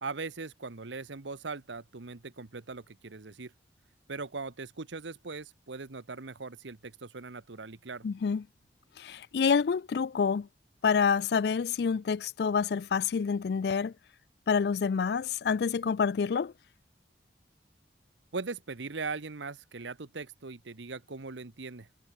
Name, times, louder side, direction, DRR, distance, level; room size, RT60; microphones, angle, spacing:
voice 1, 0.0-3.5 4.1-8.0 18.3-21.9, right 4 dB, 90° right, 1.1 m, -40 dB
voice 2, 8.0-8.4 9.0-10.5 10.8-13.9 14.5-16.5, left 6 dB, 65° left, 0.4 m, -27 dB
head